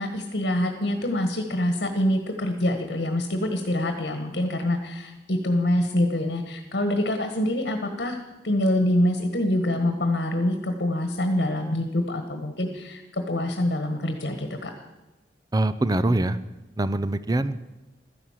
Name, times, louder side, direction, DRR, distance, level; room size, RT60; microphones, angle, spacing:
voice 1, 0.0-14.7, left 1 dB, 65° left, 5 dB, 1.5 m, -25 dB
voice 2, 15.5-16.4 16.8-17.8, right 2 dB, 20° right, 14 dB, 0.6 m, -24 dB
13.5 x 11.0 x 7.3 m, 1.1 s
head